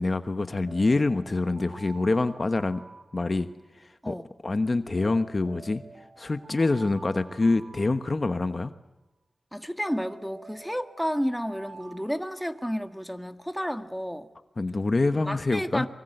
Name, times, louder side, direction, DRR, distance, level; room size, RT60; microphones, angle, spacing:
voice 1, 0.0-2.8 3.1-3.5 4.1-4.2 4.4-5.8 6.2-8.7 14.6-15.9, left 3 dB, 45° left, 1.2 m, -25 dB
sound 1, 0.7-3.9 5.0-8.7 9.9-13.1, right 3 dB, 50° right, 2.8 m, -49 dB
voice 2, 9.5-14.3 15.3-15.9, equal, ahead, 1.7 m, -31 dB
24.5 x 24.0 x 8.0 m
wide cardioid pair, 65°, 0 cm